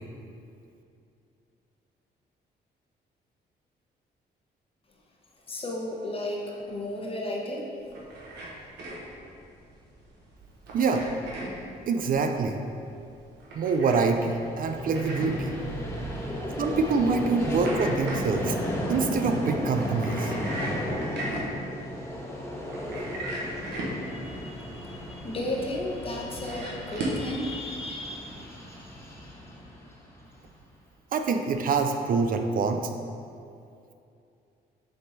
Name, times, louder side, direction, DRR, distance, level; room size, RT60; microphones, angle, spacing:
voice 1, 5.5-7.7 24.1-28.3, left 1 dB, 30° left, -1 dB, 1.1 m, -34 dB
sound 1, 7.8-27.3, right 1 dB, 80° right, 1.2 m, -38 dB
voice 2, 10.7-11.0 11.9-12.6 13.5-15.6 16.6-18.6 18.9-20.3 31.1-32.9, right 4 dB, 55° right, 5 dB, 0.5 m, -25 dB
Vehicle, 14.2-30.5, equal, 15° left, 1.2 m, -34 dB
6.6 x 3.6 x 4.2 m, 2.5 s
cardioid pair, 85°, 18 cm